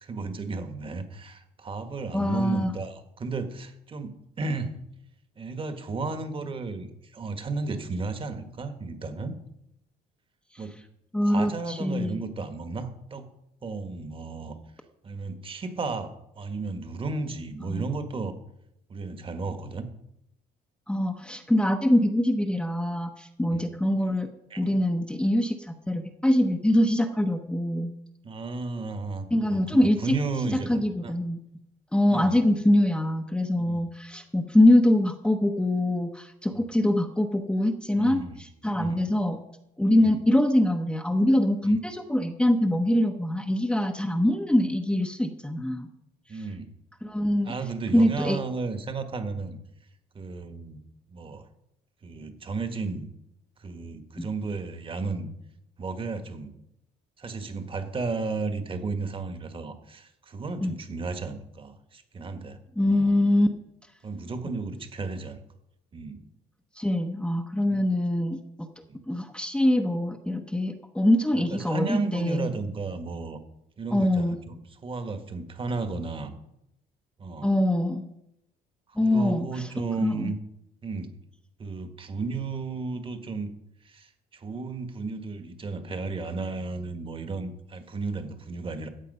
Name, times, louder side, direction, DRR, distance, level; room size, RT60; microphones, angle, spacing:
voice 1, 0.0-4.7 5.4-9.3 10.6-10.7 11.2-13.2 13.6-14.6 15.0-16.1 16.4-18.3 18.9-19.9 23.5-23.7 24.5-24.8 28.2-31.1 32.1-32.4 33.6-33.8 37.9-38.4 38.7-39.0 40.0-40.2 41.6-41.8 46.3-46.7 47.4-49.6 50.1-50.8 51.1-51.5 52.0-53.1 53.6-55.3 55.8-56.5 57.2-62.6 62.8-63.1 64.0-65.4 65.9-66.2 67.7-67.8 68.9-69.0 71.3-73.4 73.8-74.6 74.8-76.3 77.2-77.5 78.9-80.4 80.8-81.1 81.6-83.5 83.8-88.9, right 3 dB, 30° right, 8 dB, 1.6 m, -33 dB
voice 2, 2.1-2.7 11.1-12.2 17.7-17.8 20.9-24.3 24.6-27.9 29.3-30.2 30.5-31.4 31.9-38.2 38.6-39.4 39.8-45.9 47.0-47.5 47.9-48.4 54.2-54.3 60.6-60.7 62.8-63.5 66.8-68.7 69.1-72.5 73.9-74.4 77.4-78.0 79.0-79.7 80.0-80.3, left 1 dB, 5° left, 3 dB, 0.9 m, -24 dB
14.5 x 8.3 x 5.5 m, 0.82 s
cardioid pair, 110°, 17 cm